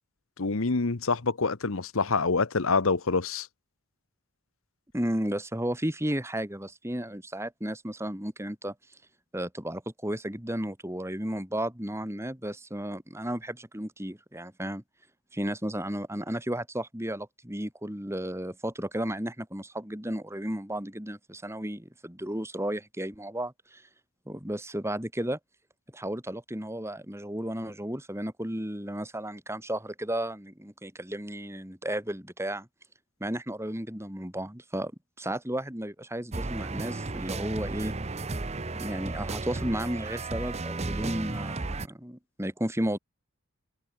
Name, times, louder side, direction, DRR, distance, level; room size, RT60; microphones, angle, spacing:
voice 1, 0.4-3.5, left 4 dB, 70° left, 1.1 m, -26 dB
voice 2, 4.9-8.7 9.3-14.8 15.3-23.9 24.3-25.4 25.9-32.7 33.2-34.9 35.2-37.9 38.7-43.0, right 1 dB, 10° right, 3.6 m, -33 dB
sound 1, 36.3-41.9, right 3 dB, 30° right, 0.8 m, -34 dB
head